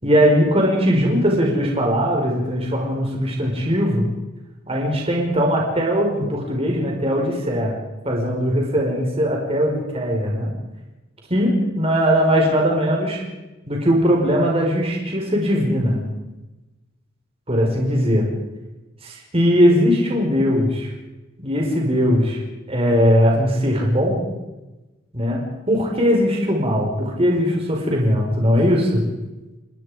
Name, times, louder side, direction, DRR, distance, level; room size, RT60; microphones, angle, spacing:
voice 1, 0.0-4.1 4.7-7.8 8.0-10.5 11.3-13.2 13.7-16.0 17.5-18.3 19.0-20.9 21.4-22.4 22.7-24.2 25.1-29.0, equal, 30° right, -1 dB, 5.2 m, -19 dB
29.5 x 20.5 x 5.2 m, 1.1 s
head